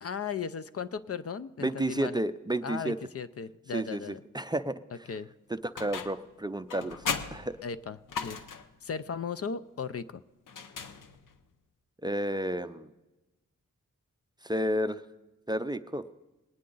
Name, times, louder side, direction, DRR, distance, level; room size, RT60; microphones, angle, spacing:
voice 1, 0.0-2.2 2.6-4.2 5.1-5.3 7.6-8.4 8.8-10.2, left 6 dB, 50° left, 14 dB, 0.5 m, -36 dB
voice 2, 1.6-3.0 3.7-4.8 5.5-7.0 7.3-7.6 12.0-12.9 14.4-15.0 15.5-16.0, right 1 dB, 15° right, 10 dB, 0.4 m, -31 dB
sound 1, 5.8-6.3 6.7-8.8 10.5-11.4, left 6 dB, 90° left, 0.8 m, -37 dB
21.0 x 9.6 x 3.9 m, 1.1 s
wide cardioid pair, 85°, 31 cm